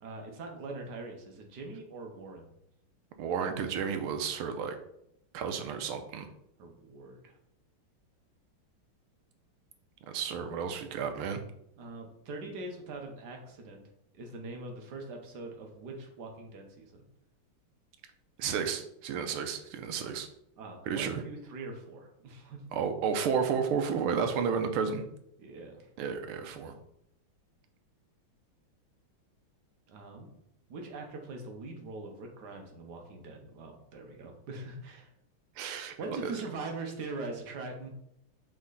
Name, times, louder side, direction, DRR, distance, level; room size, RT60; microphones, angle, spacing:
voice 1, 0.0-2.5 6.6-7.4 11.8-13.8 14.1-17.0 20.6-22.6 25.4-25.9 29.9-30.3 30.7-35.1 36.0-37.9, right 3 dB, 55° right, 2 dB, 1.4 m, -42 dB
voice 2, 3.2-4.8 5.3-6.3 10.1-11.4 18.4-20.3 20.9-21.2 22.7-25.0 26.0-26.7 35.6-36.3, right 6 dB, 85° right, 7 dB, 1.6 m, -32 dB
5.9 x 4.3 x 3.9 m, 0.76 s
omnidirectional pair, 2.4 m